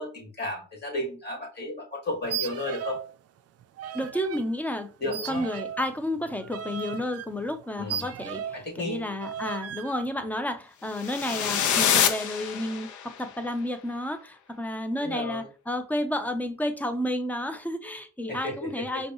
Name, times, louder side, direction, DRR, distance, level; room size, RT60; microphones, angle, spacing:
voice 1, 0.0-3.0 5.0-5.4 7.8-8.1 8.5-9.1 15.0-15.5 18.3-19.0, left 2 dB, 35° left, 1.9 m, -33 dB
sound 1, 2.2-3.1 3.4-4.4 5.1-8.7 9.2-9.9, right 9 dB, 55° right, 0.4 m, -36 dB
voice 2, 3.9-19.1, left 1 dB, 5° left, 0.6 m, -31 dB
sound 2, 11.0-13.1, left 8 dB, 75° left, 0.7 m, -26 dB
5.1 x 2.4 x 2.8 m
cardioid pair, 90°, 30 cm